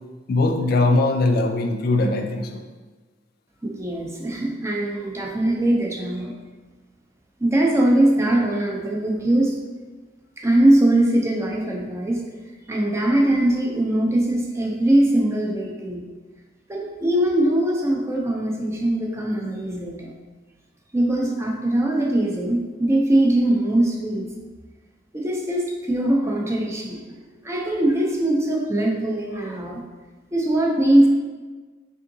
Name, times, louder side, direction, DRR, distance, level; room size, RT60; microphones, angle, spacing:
voice 1, 0.3-2.6, left 2 dB, 55° left, 5 dB, 0.3 m, -20 dB
voice 2, 3.6-6.3 7.4-9.5 10.4-12.2 12.7-16.0 16.7-20.1 20.9-24.3 25.1-27.0 27.4-29.8 30.3-31.1, right 1 dB, 15° right, -1 dB, 0.5 m, -21 dB
3.6 x 3.6 x 2.6 m, 1.3 s
head